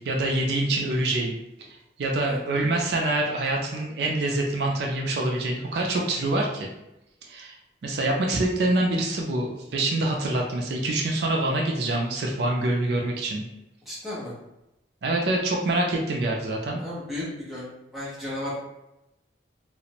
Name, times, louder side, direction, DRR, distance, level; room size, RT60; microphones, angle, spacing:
voice 1, 0.0-1.4 1.7-6.7 7.2-7.6 7.8-13.5 15.0-16.8, right 2 dB, 65° right, 0 dB, 0.4 m, -25 dB
voice 2, 13.9-14.3 16.8-17.7 17.9-18.6, left 1 dB, ahead, -9 dB, 0.8 m, -34 dB
2.4 x 2.0 x 2.8 m, 0.90 s
head